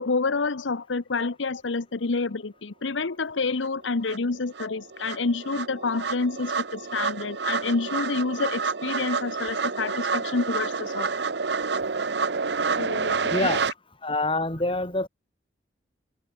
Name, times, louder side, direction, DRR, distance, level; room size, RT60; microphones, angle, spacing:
voice 1, 0.0-11.1 12.8-13.4, left 3 dB, 90° left, 0.9 m, -28 dB
sound 1, 3.6-3.7 4.1-13.7, right 5 dB, 65° right, 0.9 m, -29 dB
voice 2, 13.3-13.6 14.0-15.1, left 2 dB, 30° left, 4.1 m, -26 dB
head